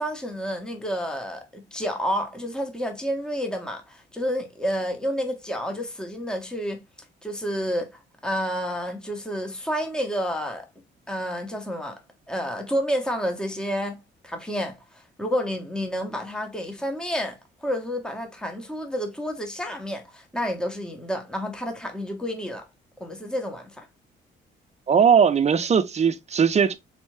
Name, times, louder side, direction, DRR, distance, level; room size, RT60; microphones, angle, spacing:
voice 1, 0.0-6.8 7.2-10.6 11.1-12.0 12.3-22.7 23.0-23.9, equal, 5° left, 0.9 m, -30 dB
voice 2, 24.9-26.7, right 7 dB, 35° right, 0.5 m, -19 dB
3.3 x 3.2 x 3.1 m
cardioid pair, 90°, 20 cm